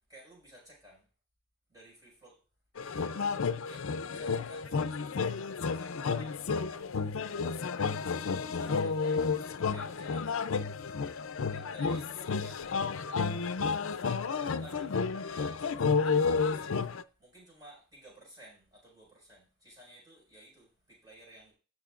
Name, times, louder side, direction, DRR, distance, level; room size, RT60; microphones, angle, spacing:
voice 1, 0.1-1.0 1.7-2.4 3.6-6.4 7.2-7.6 8.0-10.4 11.5-16.8 17.2-21.5, equal, 20° right, -3 dB, 5.3 m, -55 dB
sound 1, 2.8-17.0, left 5 dB, 85° left, 0.5 m, -31 dB
17.0 x 6.5 x 2.5 m, 0.37 s
head